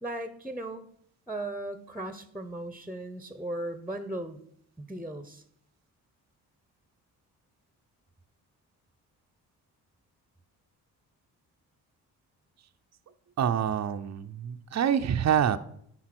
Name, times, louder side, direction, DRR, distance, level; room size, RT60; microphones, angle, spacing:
voice 1, 0.0-0.9 1.3-4.4 4.8-5.4, right 1 dB, 5° right, 10 dB, 0.9 m, -37 dB
voice 2, 13.4-15.6, right 9 dB, 40° right, 8 dB, 0.7 m, -26 dB
10.5 x 4.0 x 6.0 m, 0.69 s
supercardioid pair, 50°, 44 cm